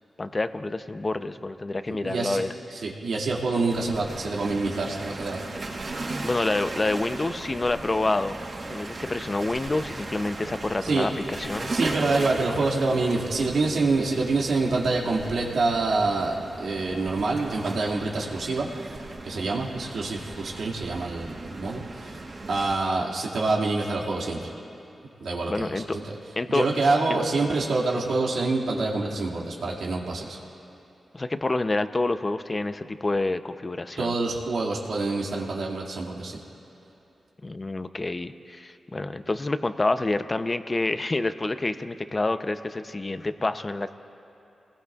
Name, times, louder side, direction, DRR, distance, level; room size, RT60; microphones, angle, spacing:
voice 1, 0.2-2.5 6.2-8.4 8.7-11.7 25.5-26.0 26.4-26.7 31.1-34.1 37.4-44.0, left 2 dB, 30° left, 10 dB, 0.6 m, -28 dB
voice 2, 1.9-2.4 2.7-5.4 10.8-11.1 11.7-18.7 19.2-22.2 22.5-24.5 25.2-26.1 26.5-30.4 34.0-36.4, right 3 dB, 85° right, -3 dB, 2.2 m, -26 dB
sound 1, 3.7-22.7, right 2 dB, 60° right, 4.3 m, -37 dB
27.5 x 20.0 x 2.4 m, 2.9 s
cardioid pair, 70°, 0 cm